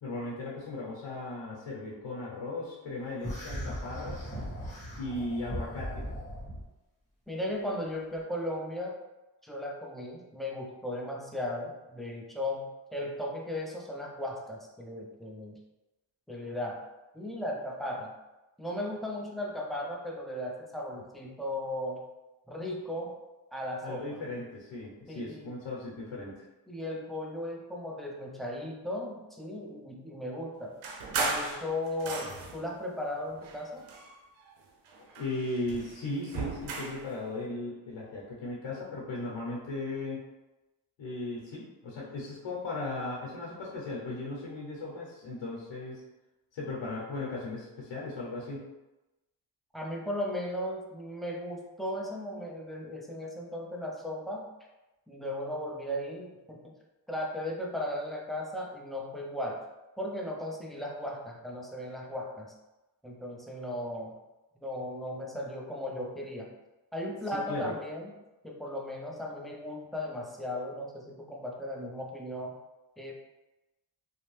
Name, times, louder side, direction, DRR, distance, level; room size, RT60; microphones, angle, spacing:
voice 1, 0.0-4.3 5.0-6.1 23.8-26.4 35.0-40.2 41.0-46.0 46.5-48.6 67.3-67.7, left 2 dB, 75° left, -4 dB, 0.9 m, -37 dB
sound 1, 3.2-6.6, equal, 15° left, 1.2 m, -38 dB
voice 2, 7.3-9.0 9.4-15.6 16.3-16.8 17.1-18.1 18.6-22.0 22.5-23.2 23.5-24.2 25.1-25.5 26.7-30.8 31.1-33.8 49.7-54.5 55.1-56.6 57.1-59.6 60.0-62.5 63.0-64.1 64.6-66.5 66.9-68.1 68.4-72.5 73.0-73.1, left 1 dB, ahead, -2 dB, 0.5 m, -36 dB
sound 2, 30.8-32.7 33.4-34.5 34.9-37.1, right 3 dB, 90° right, 0.6 m, -36 dB
2.6 x 2.1 x 3.2 m, 1.0 s
cardioid pair, 55°, 47 cm